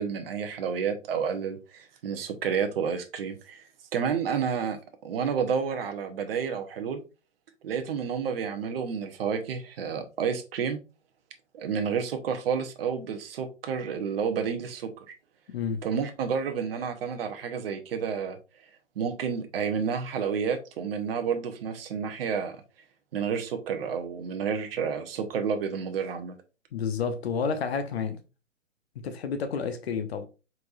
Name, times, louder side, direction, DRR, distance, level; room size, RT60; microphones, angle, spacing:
voice 1, 0.0-3.6 3.9-7.0 7.6-10.8 11.5-15.1 15.8-18.4 19.0-22.6 23.1-26.4, right 6 dB, 50° right, 0.9 m, -30 dB
voice 2, 15.5-15.8 26.7-28.2 29.0-30.3, left 6 dB, 55° left, 0.9 m, -30 dB
4.5 x 4.1 x 2.5 m
figure-of-eight pair, 120°, 38 cm